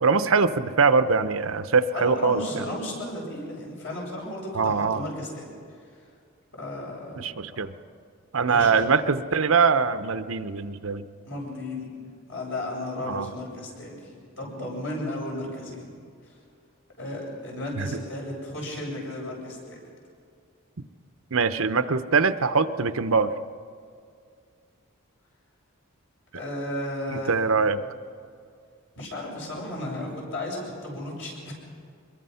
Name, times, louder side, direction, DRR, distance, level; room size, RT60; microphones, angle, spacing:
voice 1, 0.0-2.6 4.5-5.0 7.2-7.7 8.3-11.1 13.1-13.3 17.8-17.9 21.3-23.3 27.1-27.8, right 5 dB, 75° right, 10 dB, 0.8 m, -23 dB
voice 2, 1.9-5.5 6.5-7.3 8.5-8.7 11.2-11.9 12.3-14.1 14.4-15.9 16.2-16.3 17.0-19.8 26.3-27.4 29.0-31.5, left 1 dB, 60° left, -2 dB, 7.6 m, -34 dB
24.5 x 22.0 x 5.7 m, 2.2 s
head